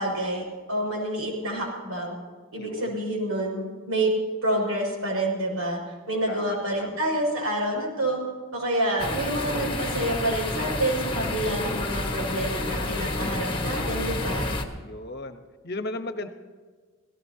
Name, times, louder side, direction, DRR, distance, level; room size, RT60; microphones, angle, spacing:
voice 1, 0.0-2.2 2.5-4.1 4.4-5.8 6.1-8.2 8.5-14.5, right 1 dB, 85° right, 0 dB, 6.1 m, -28 dB
voice 2, 2.6-3.0 6.3-7.0 14.8-16.3, left 2 dB, 45° left, 7 dB, 1.1 m, -36 dB
sound 1, 9.0-14.6, left 2 dB, 20° left, 1.4 m, -29 dB
28.0 x 17.0 x 2.8 m, 1.5 s
head